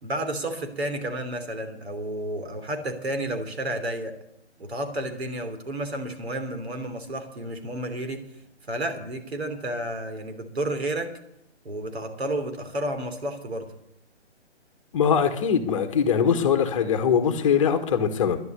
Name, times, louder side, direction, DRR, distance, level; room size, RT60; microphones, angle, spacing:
voice 1, 0.0-4.2 4.6-8.2 8.7-11.1 11.6-13.7, right 1 dB, 65° right, 7 dB, 3.3 m, -31 dB
voice 2, 14.9-18.4, left 7 dB, 30° left, 7 dB, 1.3 m, -22 dB
12.5 x 11.0 x 8.4 m, 0.78 s
figure-of-eight pair, 140°, 34 cm